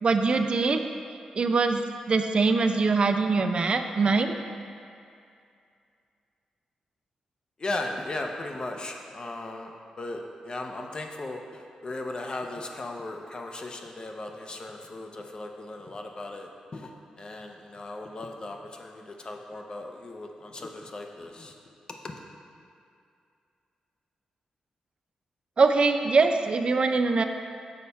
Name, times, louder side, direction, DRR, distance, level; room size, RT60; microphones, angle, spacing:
voice 1, 0.0-0.8 1.3-4.4 25.6-27.2, right 4 dB, 50° right, 7 dB, 0.4 m, -23 dB
voice 2, 7.6-16.9 17.2-21.5 22.0-22.2, left 2 dB, 40° left, 3 dB, 0.7 m, -37 dB
6.4 x 4.1 x 5.5 m, 2.4 s
cardioid pair, 85°, 2 cm